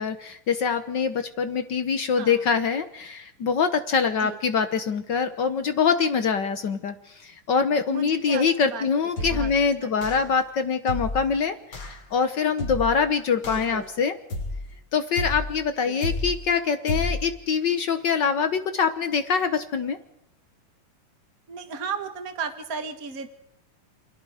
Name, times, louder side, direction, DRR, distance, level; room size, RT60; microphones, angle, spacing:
voice 1, 0.0-14.1 14.9-20.0, left 6 dB, 85° left, 9 dB, 0.9 m, -24 dB
voice 2, 7.9-8.9 9.2-9.5 9.8-10.0 13.4-13.9 15.9-16.0 21.5-23.3, right 6 dB, 40° right, 7 dB, 1.3 m, -35 dB
sound 1, 9.2-9.6 10.0-10.4 10.9-11.3 11.7-12.0 12.6-13.0 13.4-13.8 14.3-14.7 15.2-15.6 16.0-16.4 16.9-17.3, left 2 dB, 40° left, 4.6 m, -31 dB
29.0 x 28.5 x 5.0 m, 0.80 s
omnidirectional pair, 3.8 m